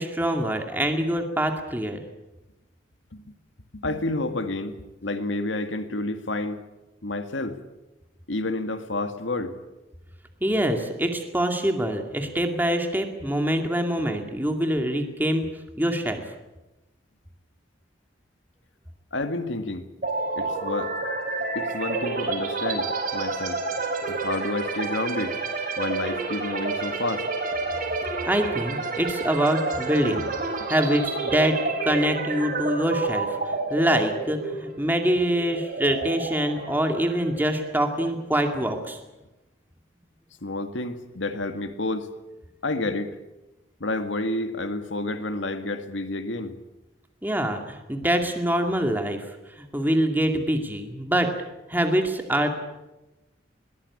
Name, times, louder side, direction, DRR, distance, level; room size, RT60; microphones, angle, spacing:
voice 1, 0.0-2.0 10.4-15.5 15.8-16.2 28.2-30.3 30.7-33.4 33.7-39.0 47.2-51.3 51.7-52.5, right 1 dB, 10° right, 4 dB, 2.3 m, -25 dB
voice 2, 3.7-6.6 7.0-7.6 8.3-9.5 19.1-19.9 20.4-20.9 21.6-23.6 24.1-25.4 25.8-27.3 40.4-42.1 42.6-43.1 43.8-46.5, left 2 dB, 80° left, 8 dB, 2.0 m, -29 dB
sound 1, 20.0-37.8, right 3 dB, 45° right, 5.1 m, -29 dB
21.5 x 19.5 x 8.6 m, 1.0 s
head